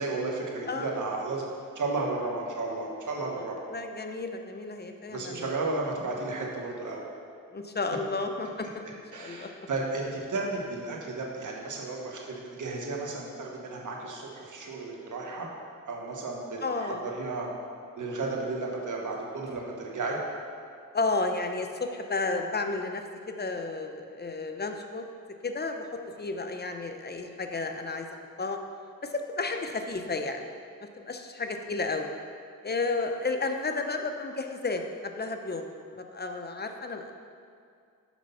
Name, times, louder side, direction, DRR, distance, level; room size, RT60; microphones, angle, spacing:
voice 1, 0.0-1.5 1.7-3.6 5.1-7.0 9.1-15.5 15.9-17.5 18.0-20.2, right 3 dB, 65° right, -1 dB, 1.3 m, -33 dB
voice 2, 3.7-5.5 7.5-8.7 9.2-9.5 16.6-17.0 20.9-25.0 25.4-28.1 28.4-28.6 29.0-30.5 30.8-32.1 32.6-35.6 36.0-37.1, left 3 dB, 30° left, 5 dB, 0.7 m, -32 dB
6.1 x 5.1 x 5.5 m, 2.3 s
cardioid pair, 65°, 33 cm